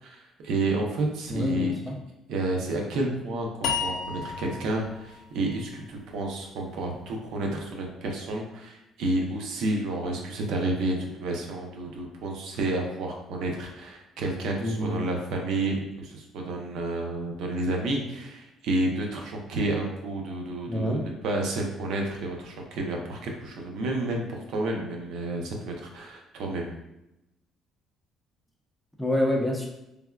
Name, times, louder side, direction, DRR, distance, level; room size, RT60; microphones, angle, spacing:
voice 1, 0.0-1.7 2.3-26.7, right 2 dB, 75° right, 1 dB, 0.6 m, -30 dB
voice 2, 1.3-2.0 14.6-15.0 20.7-21.1 29.0-29.7, equal, 5° left, -1 dB, 0.5 m, -27 dB
sound 1, 3.6-6.8, left 6 dB, 75° left, 0.3 m, -34 dB
3.4 x 2.2 x 2.2 m, 0.87 s
cardioid pair, 125°, 0 cm